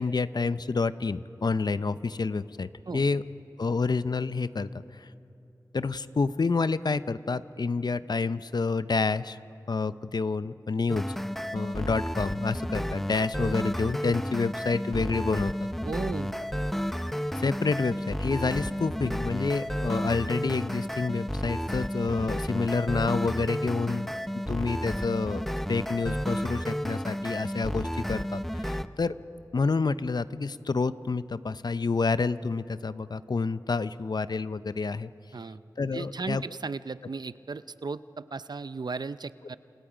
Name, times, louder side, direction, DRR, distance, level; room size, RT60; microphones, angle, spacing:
voice 1, 0.0-3.2 3.6-5.1 5.7-9.4 9.7-11.2 11.5-15.7 17.3-24.1 24.5-29.2 29.5-35.1 35.8-36.4, left 4 dB, 65° left, 14 dB, 0.6 m, -28 dB
sound 1, 10.9-28.9, equal, 5° left, 0.7 m, -32 dB
voice 2, 15.8-16.4 35.3-35.6 35.9-39.6, right 4 dB, 65° right, 14 dB, 0.6 m, -36 dB
29.0 x 28.5 x 5.1 m, 2.9 s
wide cardioid pair, 45°, 8 cm